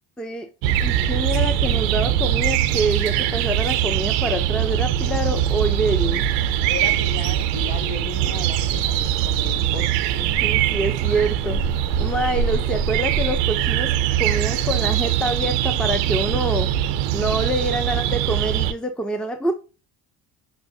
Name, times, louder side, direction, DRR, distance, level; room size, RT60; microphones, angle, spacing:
voice 1, 0.2-0.5 0.8-6.3 10.4-11.6 12.0-13.9 14.2-16.7 17.1-19.5, right 1 dB, ahead, 0.5 m, -26 dB
sound 1, 0.6-18.7, right 11 dB, 70° right, 0.6 m, -22 dB
voice 2, 6.7-9.9, left 5 dB, 60° left, 1.1 m, -35 dB
6.0 x 2.1 x 2.7 m
hypercardioid pair, 65°, 44 cm